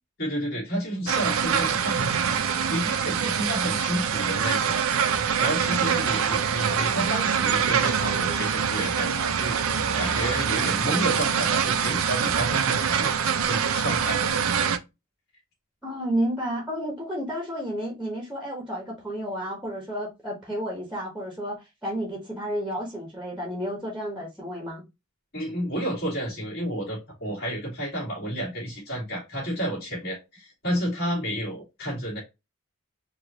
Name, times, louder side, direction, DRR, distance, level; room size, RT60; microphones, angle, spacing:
voice 1, 0.2-2.4 2.7-5.1 5.4-13.1 13.5-14.2 25.3-32.2, equal, 50° left, 2.4 m, -31 dB
sound 1, 1.1-14.8, right 7 dB, 85° right, 0.5 m, -24 dB
voice 2, 15.8-24.8, equal, 5° right, 1.1 m, -31 dB
4.6 x 2.6 x 2.8 m
head